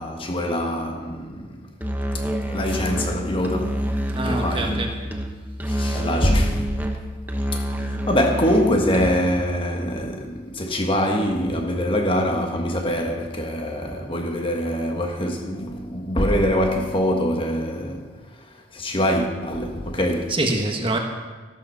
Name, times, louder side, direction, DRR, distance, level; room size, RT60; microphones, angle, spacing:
voice 1, 0.0-1.7 2.1-3.9 4.2-5.1 5.7-6.7 7.5-20.4, equal, 25° left, 1.4 m, -24 dB
Musical instrument, 1.8-9.4, equal, 10° right, 1.0 m, -27 dB
voice 2, 4.1-4.9 20.3-21.0, right 2 dB, 25° right, 1.4 m, -25 dB
13.5 x 13.0 x 5.6 m
head